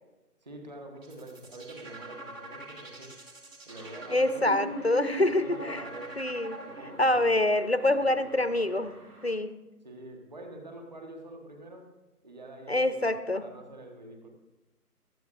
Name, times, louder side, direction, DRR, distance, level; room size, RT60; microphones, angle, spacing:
voice 1, 0.4-3.2 3.7-4.5 5.2-6.2 6.5-7.3 7.7-8.8 9.8-11.9 12.2-14.3, right 1 dB, 25° right, 3 dB, 1.5 m, -46 dB
sound 1, 1.0-7.2, right 1 dB, 55° right, 3.3 m, -41 dB
sound 2, 3.7-9.4, right 2 dB, 70° right, 3.2 m, -53 dB
voice 2, 4.1-5.8 6.2-6.6 7.0-8.9 9.2-9.5 12.7-13.4, left 1 dB, 45° left, 12 dB, 0.5 m, -26 dB
17.5 x 13.0 x 2.6 m, 1.0 s
figure-of-eight pair, 165°, 47 cm